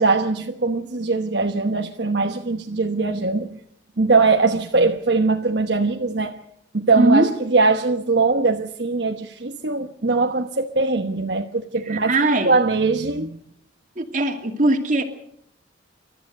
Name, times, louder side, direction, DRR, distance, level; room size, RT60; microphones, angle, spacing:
voice 1, 0.0-3.5 4.0-6.4 6.7-13.4, right 3 dB, 65° right, 1.1 m, -21 dB
voice 2, 6.9-7.3 11.9-12.6 14.0-15.0, right 2 dB, 45° right, 2.4 m, -20 dB
29.0 x 13.5 x 6.7 m
head